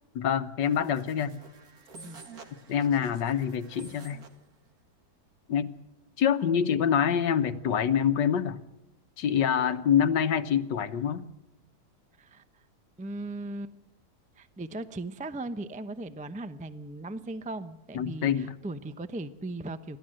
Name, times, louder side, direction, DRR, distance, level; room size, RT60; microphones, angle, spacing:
voice 1, 0.2-1.4 2.7-4.2 5.5-5.7 6.2-8.6 9.2-11.2 17.9-18.5, left 8 dB, 85° left, 11 dB, 1.6 m, -26 dB
sound 1, 0.6-4.4, right 3 dB, 60° right, 2.4 m, -50 dB
voice 2, 12.2-12.6 13.0-13.7 14.4-20.0, right 2 dB, 10° right, 12 dB, 0.3 m, -38 dB
27.5 x 12.5 x 7.7 m, 0.95 s
omnidirectional pair, 1.9 m